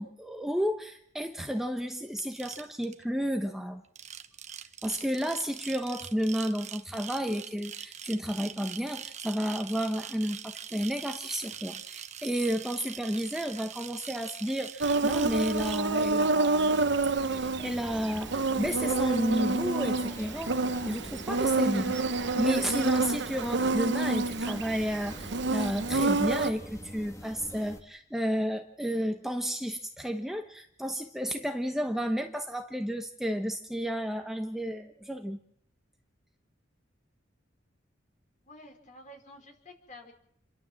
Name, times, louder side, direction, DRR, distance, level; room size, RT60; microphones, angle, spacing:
voice 1, 0.0-3.8 4.8-16.8 17.2-20.5 20.8-35.4, equal, ahead, 4 dB, 1.0 m, -32 dB
sound 1, 2.2-3.0 3.8-15.8, right 8 dB, 40° right, 1.1 m, -43 dB
Insect, 14.8-26.5, right 3 dB, 65° right, 1.0 m, -28 dB
sound 2, 16.7-27.8, equal, 15° left, 2.0 m, -44 dB
voice 2, 38.4-40.1, left 1 dB, 45° left, 3 dB, 4.8 m, -50 dB
29.0 x 12.0 x 7.5 m, 0.71 s
head